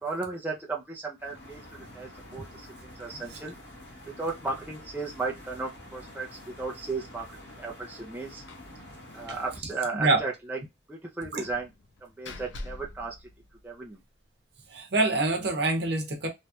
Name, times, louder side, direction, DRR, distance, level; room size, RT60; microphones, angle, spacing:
voice 1, 0.0-1.6 1.9-2.7 3.0-3.5 4.1-7.3 7.6-8.4 9.1-10.6 10.9-11.7 12.0-13.1 13.6-14.0, right 3 dB, 10° right, 0.5 m, -35 dB
sound 1, 1.2-9.6, left 1 dB, 65° left, 1.3 m, -48 dB
voice 2, 3.1-3.5 9.9-10.2 11.3-11.4 14.7-16.3, right 2 dB, 60° right, 0.9 m, -26 dB
Slam, 8.5-8.8 9.1-9.2 9.5-9.6 11.4-14.0, left 2 dB, 80° left, 0.6 m, -44 dB
3.1 x 2.3 x 2.8 m
head